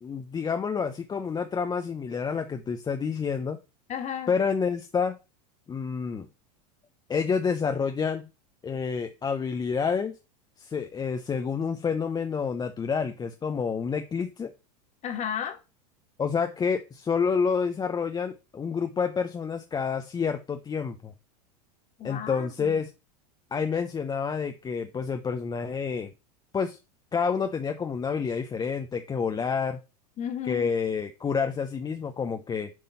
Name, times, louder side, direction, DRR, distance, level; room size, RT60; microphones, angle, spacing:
voice 1, 0.0-3.6 4.3-5.2 5.7-6.3 7.1-8.3 8.6-10.1 10.6-14.5 16.2-21.1 22.0-22.9 23.5-26.1 26.5-26.8 27.1-29.8 30.5-32.7, left 6 dB, 20° left, 0.7 m, -28 dB
voice 2, 3.9-4.3 15.0-15.6 22.0-22.8 30.2-30.7, left 8 dB, 35° left, 1.9 m, -33 dB
7.6 x 3.8 x 5.6 m
hypercardioid pair, 105°, 20 cm